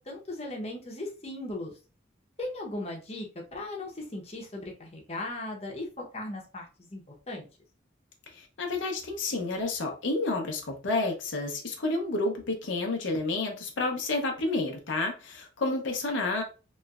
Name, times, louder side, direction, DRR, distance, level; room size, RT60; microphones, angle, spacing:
voice 1, 0.0-1.7 2.4-7.0 7.3-7.5, left 2 dB, 35° left, 0.8 m, -37 dB
voice 2, 8.3-16.4, left 2 dB, 85° left, 0.7 m, -30 dB
3.1 x 3.0 x 2.3 m
head